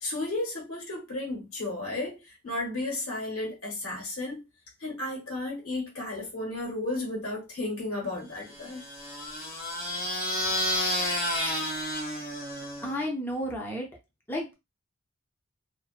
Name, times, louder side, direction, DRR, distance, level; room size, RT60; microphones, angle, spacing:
voice 1, 0.0-2.2 2.4-4.4 4.8-8.8, left 2 dB, 80° left, 1.1 m, -33 dB
sound 1, 8.5-13.1, left 1 dB, 45° left, 0.8 m, -31 dB
voice 2, 12.8-13.9 14.3-14.5, equal, 10° left, 0.6 m, -32 dB
2.4 x 2.2 x 2.4 m
head